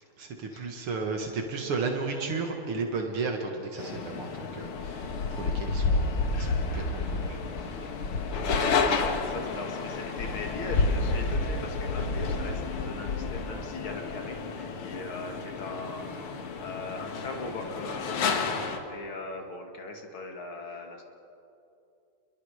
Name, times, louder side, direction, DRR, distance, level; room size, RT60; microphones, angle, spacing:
voice 1, 0.2-7.4 7.7-7.9, right 4 dB, 80° right, 2 dB, 2.6 m, -34 dB
sound 1, 3.8-18.8, left 4 dB, 90° left, 2.4 m, -30 dB
voice 2, 8.4-18.4 18.9-21.0, left 2 dB, 70° left, 3 dB, 3.1 m, -39 dB
29.0 x 23.0 x 4.9 m, 2.7 s
omnidirectional pair, 2.4 m